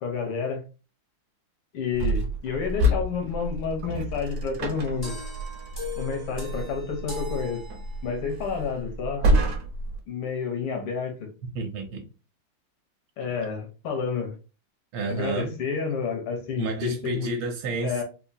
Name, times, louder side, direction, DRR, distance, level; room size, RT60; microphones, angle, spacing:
voice 1, 0.0-0.6 1.7-5.2 6.0-7.6 8.0-9.3 10.1-11.3 13.2-14.4 15.1-17.3 17.8-18.0, left 5 dB, 85° left, 1.8 m, -30 dB
sound 1, 1.9-10.0, equal, 55° right, 1.0 m, -28 dB
sound 2, 5.0-8.3, left 2 dB, 25° left, 0.4 m, -40 dB
voice 2, 11.4-12.0 14.9-15.6 16.6-18.0, right 3 dB, 75° right, 1.4 m, -30 dB
4.3 x 2.3 x 2.7 m
omnidirectional pair, 2.4 m